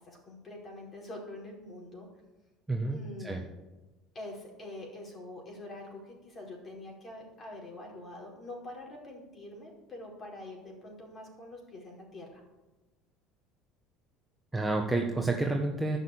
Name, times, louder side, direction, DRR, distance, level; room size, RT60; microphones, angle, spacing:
voice 1, 0.0-2.1 2.9-3.5 4.1-12.4, left 1 dB, 30° left, -1 dB, 5.0 m, -45 dB
voice 2, 2.7-3.4 14.5-16.0, right 2 dB, 10° right, 1 dB, 1.2 m, -30 dB
12.0 x 6.8 x 8.9 m, 1.1 s
cardioid pair, 125°, 0 cm